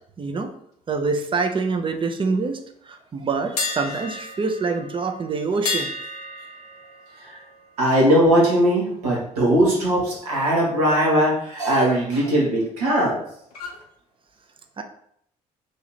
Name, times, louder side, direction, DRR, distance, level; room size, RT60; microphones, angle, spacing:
voice 1, 0.2-0.5 0.9-2.6 2.8-5.9 14.8-14.9, right 4 dB, 25° right, 6 dB, 0.6 m, -25 dB
sound 1, 3.6-9.5 9.8-10.0 13.5-13.8, left 3 dB, 80° left, 0.5 m, -34 dB
voice 2, 7.8-13.2, right 1 dB, 80° right, -4 dB, 1.2 m, -19 dB
3.1 x 2.8 x 4.1 m, 0.69 s
figure-of-eight pair, 50°, 19 cm